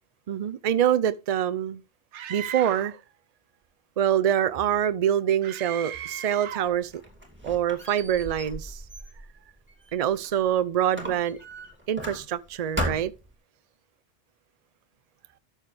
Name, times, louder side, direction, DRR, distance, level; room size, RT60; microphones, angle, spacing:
voice 1, 0.3-1.8 2.3-3.0 4.0-6.9 7.4-8.8 9.9-11.4 11.9-13.1, right 10 dB, 45° right, 0.5 m, -25 dB
Screaming, 2.1-3.0 5.4-6.8, right 10 dB, 90° right, 1.0 m, -37 dB
Squeak, 6.7-10.5 10.9-12.5 12.8-13.3, equal, 10° right, 2.7 m, -36 dB
13.0 x 7.4 x 3.4 m
omnidirectional pair, 1.2 m